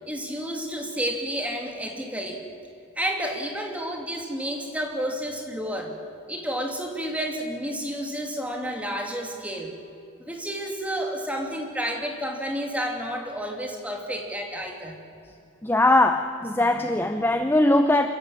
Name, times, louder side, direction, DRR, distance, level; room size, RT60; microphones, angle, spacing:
voice 1, 0.1-2.4 3.0-6.0 6.3-9.7 10.3-15.0, equal, 5° right, 2 dB, 2.7 m, -30 dB
voice 2, 15.6-18.1, left 1 dB, 10° left, 7 dB, 0.7 m, -20 dB
25.5 x 14.5 x 9.0 m, 2.5 s
head